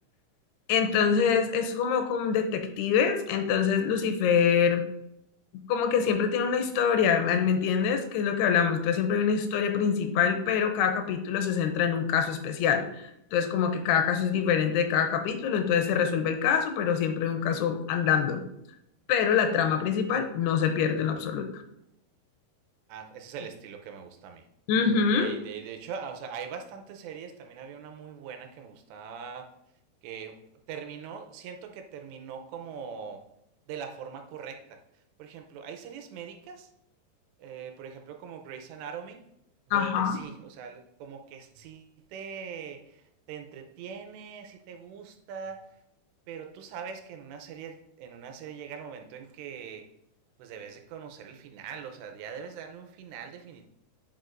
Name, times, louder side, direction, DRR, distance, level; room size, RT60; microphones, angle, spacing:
voice 1, 0.7-4.8 5.5-18.4 19.1-21.5 24.7-25.3 39.7-40.2, left 7 dB, 80° left, 6 dB, 2.7 m, -25 dB
voice 2, 22.9-24.4 25.1-29.5 30.0-30.4 30.7-33.2 33.7-34.8 35.2-36.7 37.4-39.2 39.7-45.6 46.3-49.8 50.4-53.7, right 6 dB, 90° right, 5 dB, 3.0 m, -42 dB
9.5 x 5.2 x 2.6 m, 0.79 s
omnidirectional pair, 4.8 m